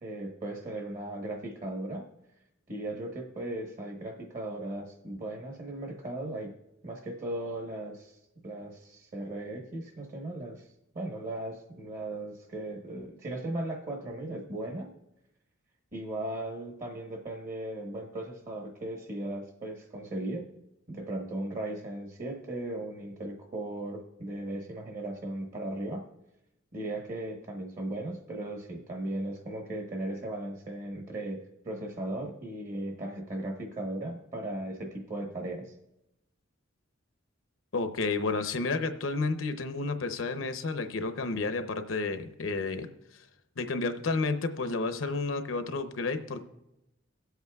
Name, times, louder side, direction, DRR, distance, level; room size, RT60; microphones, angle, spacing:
voice 1, 0.0-2.1 2.7-6.5 6.8-8.1 8.4-10.6 10.9-14.9 15.9-20.4 20.9-26.1 26.7-35.6, right 1 dB, 40° right, 2 dB, 1.1 m, -37 dB
voice 2, 37.7-42.9 43.1-43.3 43.6-46.4, left 3 dB, 70° left, 8 dB, 0.7 m, -31 dB
22.5 x 8.0 x 2.3 m, 0.90 s
head